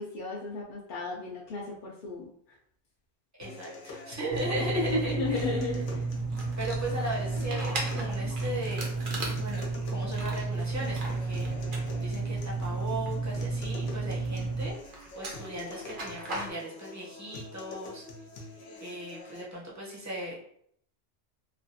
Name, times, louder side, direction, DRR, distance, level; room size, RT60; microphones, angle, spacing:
voice 1, 0.0-2.6 4.7-5.8, left 3 dB, 60° left, -3 dB, 0.6 m, -34 dB
sound 1, 3.4-19.4, left 2 dB, 85° left, 0.9 m, -46 dB
voice 2, 3.4-5.6 6.6-8.9 9.4-11.5 12.0-14.7 15.1-18.0 18.8-20.4, right 1 dB, 20° right, -4 dB, 0.5 m, -37 dB
sound 2, 4.3-14.7, right 3 dB, 85° right, 1.0 m, -32 dB
sound 3, 6.1-13.9 14.1-16.5, right 2 dB, 50° right, 0.8 m, -40 dB
3.2 x 2.3 x 2.6 m, 0.66 s
omnidirectional pair, 1.2 m